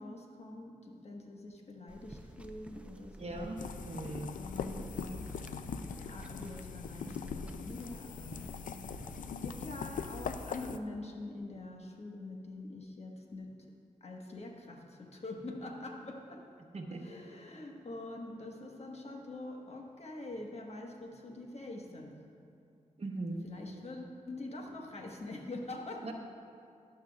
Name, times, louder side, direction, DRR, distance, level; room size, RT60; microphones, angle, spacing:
voice 1, 0.0-3.4 4.3-5.3 5.9-8.9 9.4-13.5 14.0-16.4 17.0-22.1 23.3-26.1, left 2 dB, 50° left, 1 dB, 1.3 m, -45 dB
sound 1, 1.9-9.3, right 1 dB, 10° right, 0.6 m, -51 dB
voice 2, 3.2-4.3 16.7-17.0 23.0-23.4 26.0-26.1, right 2 dB, 50° right, 2 dB, 1.1 m, -39 dB
sound 2, 3.6-10.8, left 6 dB, 85° left, 0.4 m, -41 dB
12.5 x 10.5 x 2.3 m, 2.5 s
cardioid pair, 65°, 13 cm